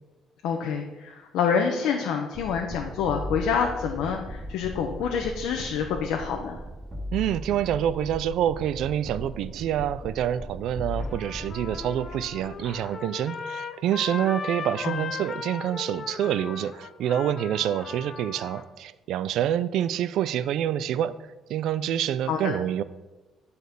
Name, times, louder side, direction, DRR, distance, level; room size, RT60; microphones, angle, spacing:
voice 1, 0.4-6.6 14.8-15.0 22.3-22.6, left 6 dB, 85° left, 2 dB, 0.9 m, -27 dB
sound 1, 2.3-12.8, equal, 15° right, 1.5 m, -38 dB
voice 2, 7.1-21.1 21.5-22.8, right 10 dB, 65° right, 15 dB, 0.4 m, -27 dB
Trumpet, 11.0-18.6, left 5 dB, 30° left, 0.5 m, -38 dB
9.4 x 4.1 x 6.8 m, 1.2 s
cardioid pair, 170°, 0 cm